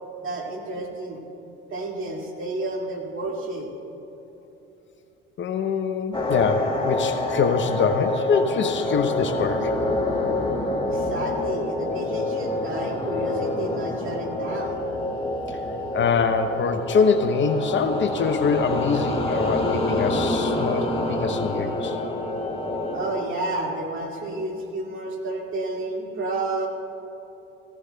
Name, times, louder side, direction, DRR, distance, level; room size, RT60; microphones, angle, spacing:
voice 1, 0.2-1.2 1.7-3.7 10.9-14.8 22.9-26.7, right 2 dB, 40° right, -1 dB, 2.2 m, -30 dB
voice 2, 5.4-9.7 15.5-15.6 15.9-22.0, left 5 dB, 40° left, 8 dB, 0.7 m, -24 dB
sound 1, 6.1-23.1, left 2 dB, 20° left, 2.1 m, -27 dB
15.5 x 14.5 x 2.3 m, 2.9 s
hypercardioid pair, 60°, 30 cm